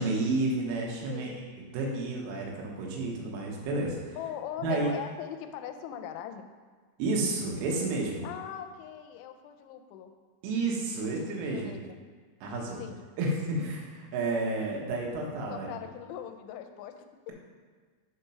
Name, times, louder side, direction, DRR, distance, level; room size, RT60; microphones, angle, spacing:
voice 1, 0.0-4.2 4.6-4.9 7.0-8.3 10.4-11.7 12.4-12.8 13.2-15.7, right 2 dB, 85° right, -1 dB, 3.7 m, -31 dB
voice 2, 1.1-1.4 4.2-6.5 8.2-10.1 11.5-12.0 12.8-13.0 15.5-17.0, left 9 dB, 85° left, 6 dB, 2.9 m, -40 dB
7.1 x 4.5 x 5.5 m, 1.5 s
omnidirectional pair, 5.6 m